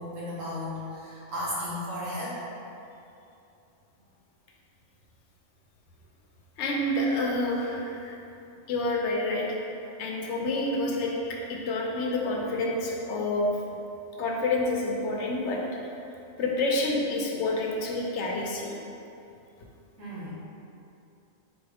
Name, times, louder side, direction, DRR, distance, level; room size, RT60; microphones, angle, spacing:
voice 1, 0.0-2.4 20.0-20.3, left 1 dB, 85° right, -8 dB, 1.6 m, -34 dB
voice 2, 6.6-8.1 8.7-9.5 10.0-13.5 14.2-15.6 16.4-18.8, left 2 dB, 70° left, -1 dB, 0.9 m, -28 dB
4.2 x 3.4 x 3.4 m, 2.7 s
omnidirectional pair, 1.3 m